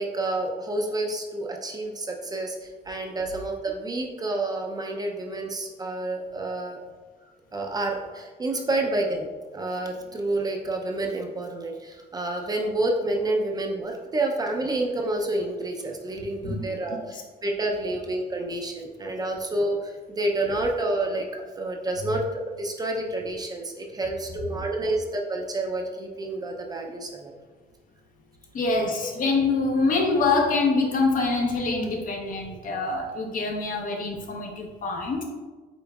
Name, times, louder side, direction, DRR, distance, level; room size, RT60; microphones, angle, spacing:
voice 1, 0.0-6.8 7.5-9.3 9.5-22.2 22.6-27.3, right 2 dB, 25° right, 1 dB, 0.5 m, -29 dB
voice 2, 28.5-35.2, left 3 dB, 55° left, 2 dB, 0.8 m, -25 dB
5.3 x 3.8 x 2.3 m, 1.3 s
cardioid pair, 110°, 17 cm